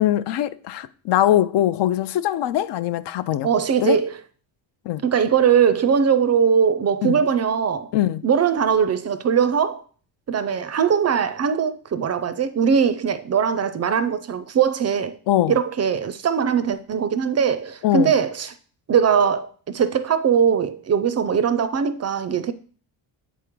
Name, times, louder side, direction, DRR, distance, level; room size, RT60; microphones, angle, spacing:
voice 1, 0.0-3.5 3.8-4.0 4.9-5.0 7.0-7.2 7.9-8.2 15.3-15.5 17.8-18.1, left 13 dB, 65° left, 0.5 m, -21 dB
voice 2, 3.4-4.1 5.0-7.9 8.2-9.8 10.3-15.2 15.5-18.5 18.9-22.5, right 7 dB, 35° right, 0.4 m, -20 dB
8.1 x 3.7 x 4.6 m
cardioid pair, 135°, 46 cm